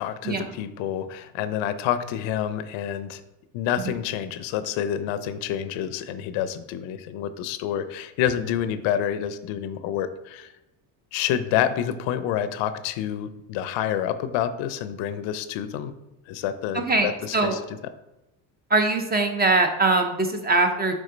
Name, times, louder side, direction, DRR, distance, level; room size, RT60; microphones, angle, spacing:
voice 1, 0.0-3.2 3.5-10.5 11.1-15.9 16.3-17.6, left 10 dB, 85° left, 12 dB, 0.6 m, -28 dB
voice 2, 16.7-17.6 18.7-20.9, right 3 dB, 20° right, 5 dB, 0.7 m, -22 dB
5.2 x 3.7 x 5.0 m, 0.96 s
cardioid pair, 115°, 44 cm